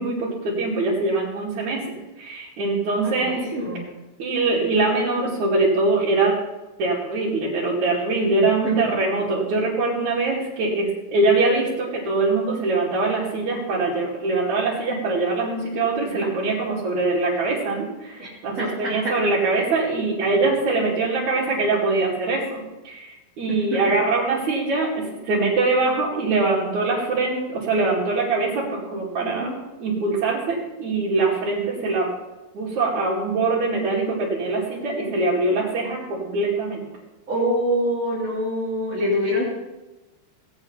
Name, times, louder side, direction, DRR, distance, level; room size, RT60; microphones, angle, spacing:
voice 1, 0.0-3.4 4.2-6.4 6.8-29.5 29.8-32.1 32.5-36.8, right 3 dB, 70° right, -8 dB, 4.1 m, -23 dB
voice 2, 3.0-3.9 8.6-9.0 16.0-16.4 18.2-18.3 18.6-19.1 20.4-20.5 23.5-24.0 29.2-29.6 37.3-39.5, equal, 25° right, -9 dB, 3.7 m, -26 dB
18.5 x 9.1 x 5.7 m, 1.1 s
omnidirectional pair, 3.5 m